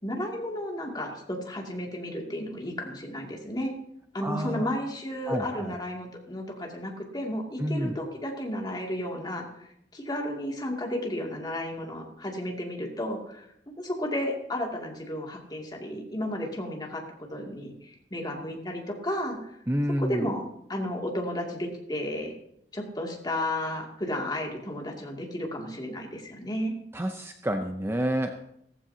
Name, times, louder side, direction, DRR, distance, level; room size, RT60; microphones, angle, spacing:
voice 1, 0.0-3.7 4.1-9.7 9.9-13.5 13.8-17.0 17.3-19.5 20.0-20.4 20.7-22.3 22.7-26.7, left 1 dB, 25° left, 0 dB, 2.5 m, -33 dB
voice 2, 4.2-4.7 5.3-5.7 7.6-8.0 19.7-20.3 26.9-28.4, equal, 15° right, 5 dB, 0.7 m, -29 dB
16.5 x 15.0 x 2.8 m, 0.74 s
head